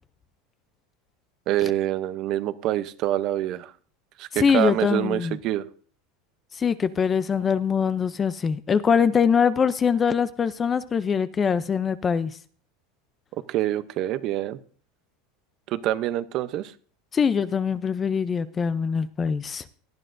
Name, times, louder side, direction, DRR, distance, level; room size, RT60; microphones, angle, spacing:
voice 1, 1.5-3.7 4.2-5.7 13.5-14.6 15.7-16.7, right 13 dB, 40° right, 13 dB, 0.7 m, -26 dB
voice 2, 4.4-5.3 6.6-12.3 17.1-19.6, left 6 dB, 20° left, 15 dB, 0.5 m, -23 dB
18.5 x 12.0 x 2.6 m, 0.43 s
supercardioid pair, 160°, 0 cm